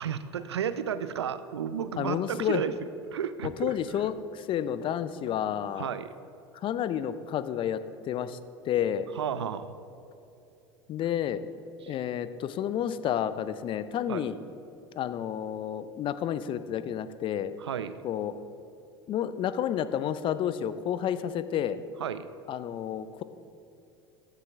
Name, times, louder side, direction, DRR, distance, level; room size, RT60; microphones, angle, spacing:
voice 1, 0.0-2.7 3.1-4.0 5.8-6.1 9.1-9.8 11.8-12.0 14.1-14.2 17.6-18.0 22.0-22.3, right 8 dB, 85° right, 13 dB, 0.4 m, -33 dB
voice 2, 2.0-2.6 3.6-5.9 6.5-7.8 8.1-8.4 8.6-9.1 10.9-11.4 11.9-14.3 14.9-17.5 18.0-18.3 19.1-21.8 22.5-23.2, left 10 dB, 40° left, 13 dB, 0.5 m, -30 dB
14.5 x 6.6 x 3.5 m, 2.7 s
hypercardioid pair, 80°, 14 cm